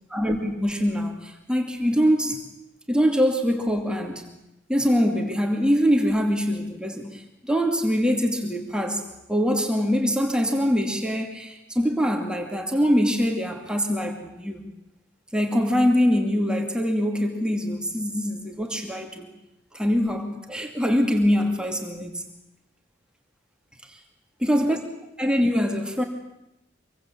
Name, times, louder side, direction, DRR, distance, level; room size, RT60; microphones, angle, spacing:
voice 1, 0.1-2.4 2.9-4.3 4.7-9.0 9.3-14.6 15.3-19.3 19.7-22.2 24.4-24.8 25.2-26.0, equal, 5° right, 3 dB, 2.5 m, -23 dB
26.0 x 22.5 x 8.6 m, 0.87 s
head